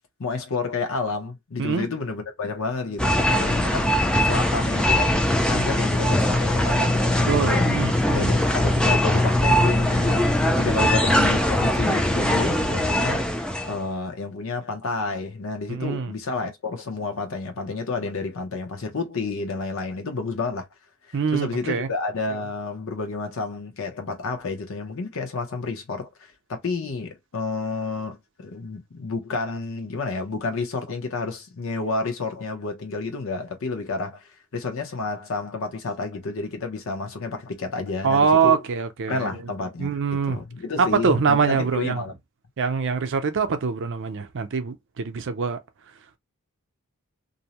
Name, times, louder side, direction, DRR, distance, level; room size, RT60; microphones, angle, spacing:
voice 1, 0.2-7.8 8.1-13.3 13.6-20.7 21.3-26.1 26.5-38.6 39.1-39.9 40.3-42.1, left 3 dB, 65° left, 0.7 m, -30 dB
sound 1, 3.0-13.8, left 1 dB, 5° left, 0.3 m, -21 dB
voice 2, 7.3-8.4 15.7-16.1 21.1-21.9 38.0-39.5 39.8-40.4 40.8-42.0 42.6-45.6, right 5 dB, 60° right, 0.5 m, -24 dB
2.6 x 2.0 x 2.8 m
head